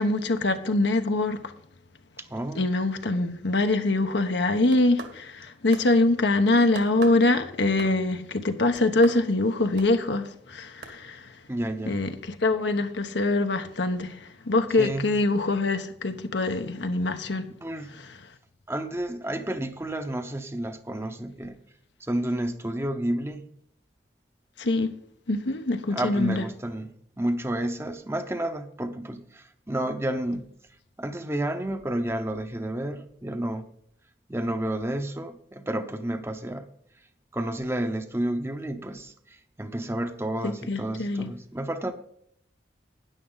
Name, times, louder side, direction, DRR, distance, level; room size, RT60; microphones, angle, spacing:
voice 1, 0.0-1.4 2.6-5.3 5.6-11.2 11.9-14.1 14.5-17.5 24.6-24.9 25.3-26.4 40.4-41.3, left 2 dB, 75° left, 1.0 m, -24 dB
voice 2, 2.2-2.6 11.5-12.0 14.8-15.1 17.5-17.9 18.7-21.6 22.0-23.4 25.9-26.9 27.2-30.5 31.0-33.7 34.3-36.6 37.3-39.1 39.6-41.9, right 1 dB, 15° right, 0.8 m, -30 dB
sound 1, 4.5-5.5 5.7-5.9 6.7-7.2 7.8-8.2 8.7-9.2 9.8-9.9 10.8-10.9, right 3 dB, 65° right, 2.1 m, -39 dB
13.0 x 10.0 x 3.9 m
head